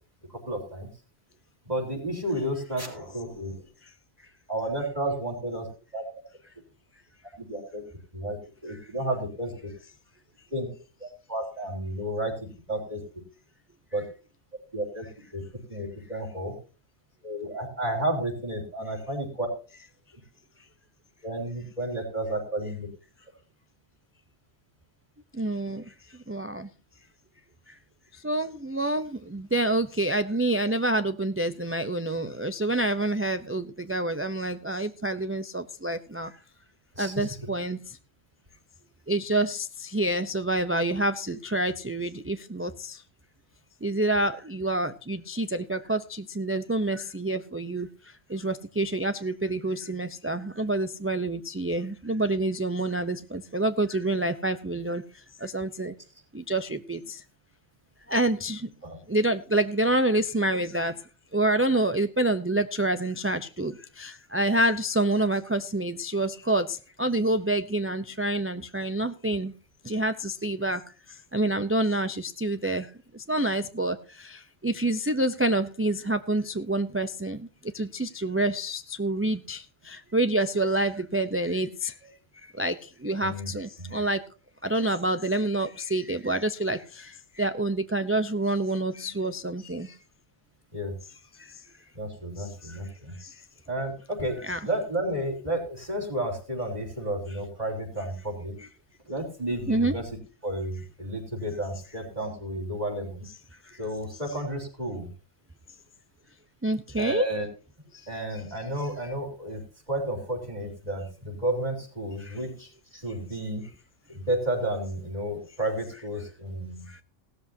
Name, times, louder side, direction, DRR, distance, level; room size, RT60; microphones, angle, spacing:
voice 1, 0.3-0.9 1.7-3.6 4.5-5.7 5.9-6.0 7.4-7.8 8.1-8.4 8.6-9.7 10.5-10.7 11.0-12.3 12.7-13.0 13.9-14.0 14.7-15.1 15.3-15.4 15.7-16.5 17.2-19.5 21.2-22.9 37.0-37.4 41.3-41.4 58.8-59.0 60.5-60.6 83.2-83.5 83.8-84.0 89.0-89.4 90.7-90.9 91.9-93.1 93.7-94.4 94.6-98.5 99.1-100.2 100.4-103.3 103.8-105.1 107.0-107.5 108.1-109.6 109.9-113.6 114.1-116.9, right 1 dB, 30° right, 2 dB, 4.2 m, -32 dB
voice 2, 25.4-25.8 26.3-26.7 28.2-36.3 37.0-37.8 39.1-43.0 43.8-47.9 48.3-55.0 55.4-55.9 56.3-57.2 58.1-58.7 59.1-60.9 61.3-69.5 69.9-70.8 71.3-72.9 73.3-77.4 77.7-81.9 82.6-82.8 83.0-84.2 84.6-87.1 87.4-89.9 94.4-94.7 98.6-98.7 99.7-100.0 106.6-107.3 112.3-112.4, right 1 dB, 15° right, 10 dB, 0.4 m, -27 dB
17.0 x 13.0 x 2.7 m, 0.35 s
omnidirectional pair, 1.3 m